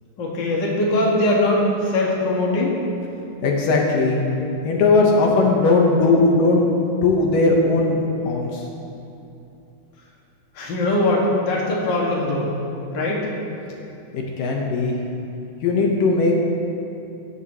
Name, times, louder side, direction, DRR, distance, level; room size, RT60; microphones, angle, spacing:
voice 1, 0.2-2.7 10.5-12.5 12.9-13.3, left 1 dB, 40° left, -4 dB, 2.1 m, -21 dB
voice 2, 3.4-4.2 4.6-6.7 7.0-8.0 8.3-8.6 14.1-15.0 15.6-16.4, left 3 dB, 70° left, -1 dB, 2.7 m, -18 dB
17.5 x 14.0 x 3.1 m, 2.7 s
omnidirectional pair, 4.2 m